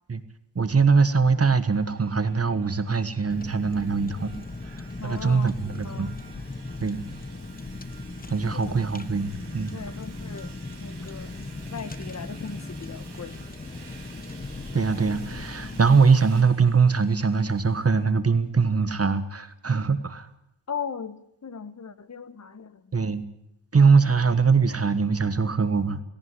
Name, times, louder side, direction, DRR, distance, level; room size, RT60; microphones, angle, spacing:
voice 1, 0.5-4.3 5.0-6.1 6.8-7.1 8.3-9.7 14.7-20.3 22.9-23.2 23.7-26.0, right 5 dB, 35° right, 11 dB, 1.5 m, -22 dB
sound 1, 1.3-18.1, right 5 dB, 60° right, 4.5 m, -51 dB
Car, 3.3-15.9, left 3 dB, 20° left, 1.2 m, -38 dB
voice 2, 5.0-5.5 5.8-6.1 8.5-8.8 9.7-10.5 10.8-13.4 20.7-22.8, left 6 dB, 40° left, 13 dB, 1.4 m, -38 dB
18.5 x 17.5 x 9.5 m, 0.80 s
wide cardioid pair, 125°, 44 cm